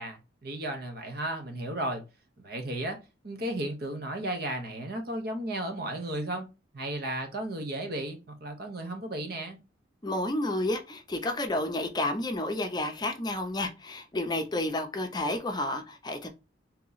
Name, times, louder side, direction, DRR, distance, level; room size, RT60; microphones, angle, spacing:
voice 1, 0.0-2.0 2.4-3.0 3.2-6.5 6.7-9.6, right 1 dB, 55° right, 0.9 m, -34 dB
voice 2, 10.0-16.3, left 1 dB, 25° left, 0.6 m, -31 dB
3.0 x 2.8 x 3.9 m
head